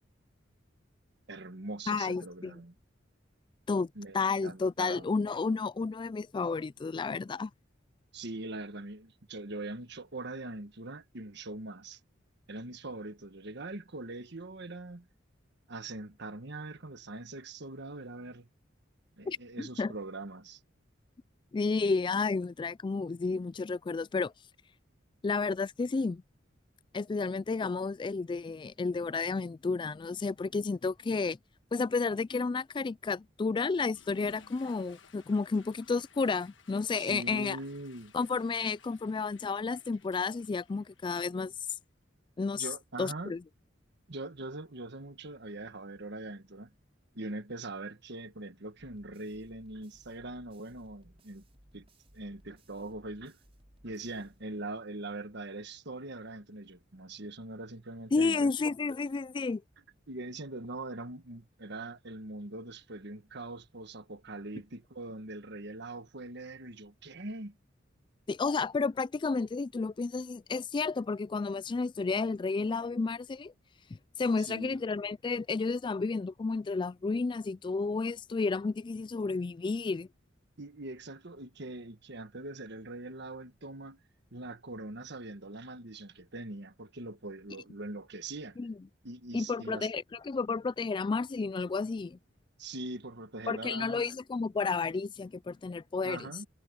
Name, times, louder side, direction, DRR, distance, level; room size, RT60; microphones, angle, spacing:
voice 1, 1.3-2.7 3.9-5.1 8.1-12.0 12.5-15.1 15.7-18.5 19.2-20.6 37.0-38.1 42.6-43.3 44.1-46.7 47.1-51.4 51.7-51.8 52.1-53.4 53.8-58.5 60.1-67.6 74.4-74.8 80.6-84.0 84.3-88.6 89.0-89.9 92.6-94.1 96.0-96.5, right 2 dB, 65° right, 1.5 m, -42 dB
voice 2, 1.9-2.5 3.7-7.5 19.3-19.9 21.5-24.3 25.2-26.2 26.9-31.4 31.7-37.6 38.1-41.5 42.4-42.7 43.0-43.4 58.1-59.6 68.3-73.5 74.2-80.1 88.6-88.7 89.3-92.2 93.5-96.3, left 4 dB, 25° left, 0.3 m, -31 dB
Water / Toilet flush, 33.9-41.6, left 5 dB, 70° left, 1.5 m, -59 dB
sound 1, 48.8-54.9, right 1 dB, 30° right, 4.9 m, -62 dB
head